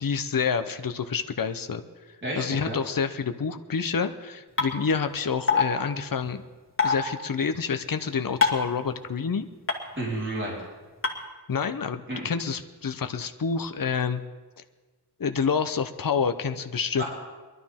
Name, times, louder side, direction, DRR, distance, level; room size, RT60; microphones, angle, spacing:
voice 1, 0.0-1.8 2.4-6.4 6.8-9.5 11.5-14.2 14.6-14.7 15.2-17.0, left 6 dB, 55° left, 9 dB, 0.8 m, -28 dB
voice 2, 2.2-2.8 10.0-10.6 12.1-12.3 17.0-17.1, right 1 dB, 30° right, -5 dB, 4.3 m, -31 dB
sound 1, 4.6-4.7 5.5-5.6 6.8-6.9 8.4-8.7 9.7-9.8 11.0-11.1, left 5 dB, 30° left, 2.0 m, -21 dB
23.0 x 12.0 x 3.6 m, 1.3 s
wide cardioid pair, 70°, 40 cm